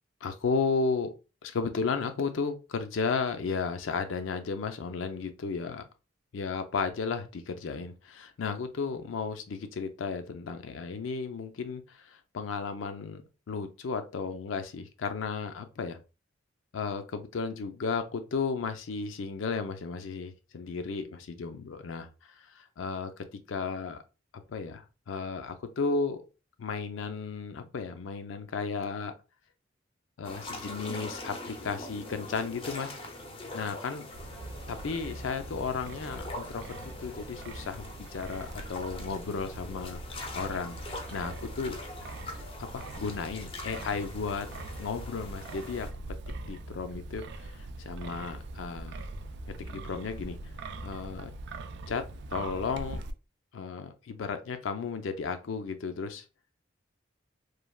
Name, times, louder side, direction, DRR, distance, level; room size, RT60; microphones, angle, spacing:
voice 1, 0.2-1.1 1.4-5.8 6.3-13.2 13.5-16.0 16.7-24.0 24.5-26.2 26.6-29.1 30.2-33.0 33.5-34.1 34.7-41.8 42.6-44.5 44.8-45.9 46.4-49.0 49.6-50.4 50.8-51.3 51.9-52.0 52.3-53.0 53.5-56.2, left 5 dB, 90° left, 0.4 m, -34 dB
sound 1, 30.2-45.9, left 2 dB, 30° left, 0.5 m, -43 dB
Wind, 34.1-53.1, right 2 dB, 60° right, 0.3 m, -42 dB
3.2 x 2.2 x 2.3 m
head